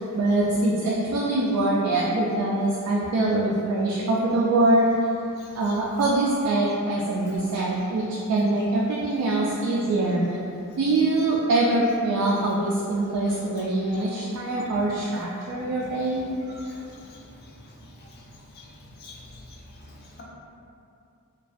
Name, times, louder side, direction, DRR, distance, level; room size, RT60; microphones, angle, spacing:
voice 1, 0.1-4.8 5.5-10.2 10.8-16.6, right 2 dB, 75° right, -5 dB, 0.3 m, -24 dB
voice 2, 5.4-5.8 7.3-7.7 9.5-9.6 13.3-14.1 14.3-14.4 16.6-20.2, left 2 dB, 45° left, -3 dB, 0.4 m, -48 dB
2.4 x 2.2 x 2.4 m, 2.6 s
head